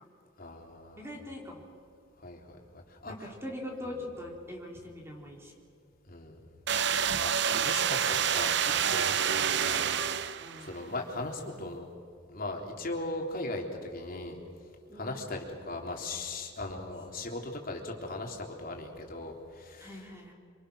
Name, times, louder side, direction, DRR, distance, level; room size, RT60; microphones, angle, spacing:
voice 1, 0.4-1.1 2.2-3.3 3.8-3.9 6.1-6.6 7.2-9.9 10.6-11.9 12.3-14.4 14.9-20.0, left 2 dB, 50° left, 1 dB, 3.7 m, -39 dB
voice 2, 1.0-1.6 3.1-5.5 10.4-10.7 14.9-15.2 19.8-20.3, left 1 dB, 15° right, -1 dB, 4.3 m, -42 dB
sound 1, 6.7-10.7, right 8 dB, 65° right, 0.8 m, -28 dB
27.0 x 26.5 x 6.6 m, 2.3 s
head